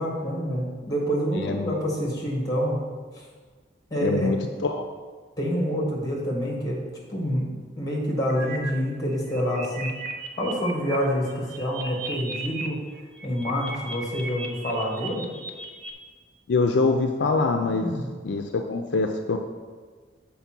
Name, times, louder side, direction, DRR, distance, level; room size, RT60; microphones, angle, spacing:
voice 1, 0.0-2.8 3.1-3.3 3.9-4.3 5.4-6.8 7.1-10.0 10.4-12.8 13.2-15.3 17.8-18.1, equal, 20° left, -2 dB, 1.8 m, -27 dB
voice 2, 1.3-1.7 4.0-4.8 16.5-17.9 18.2-19.4, left 3 dB, 65° left, 5 dB, 0.4 m, -24 dB
sound 1, 8.3-8.7 9.1-11.0 11.3-12.7 13.0-15.9, right 4 dB, 70° right, 0.8 m, -36 dB
6.9 x 4.4 x 6.0 m, 1.5 s
head